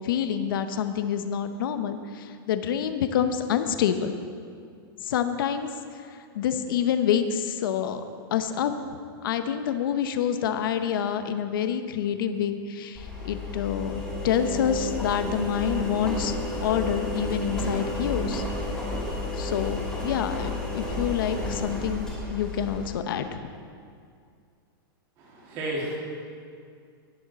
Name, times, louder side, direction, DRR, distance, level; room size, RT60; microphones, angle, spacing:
voice 1, 0.0-4.1 5.0-6.0 6.3-8.0 8.3-8.7 9.2-16.3 16.6-18.4 19.3-23.5, left 8 dB, 65° left, 9 dB, 0.8 m, -27 dB
Engine, 12.9-22.9, left 2 dB, 5° left, 2.4 m, -32 dB
voice 2, 25.2-26.0, right 1 dB, 30° right, -2 dB, 2.3 m, -32 dB
18.5 x 6.5 x 4.2 m, 2.3 s
supercardioid pair, 165°, 12 cm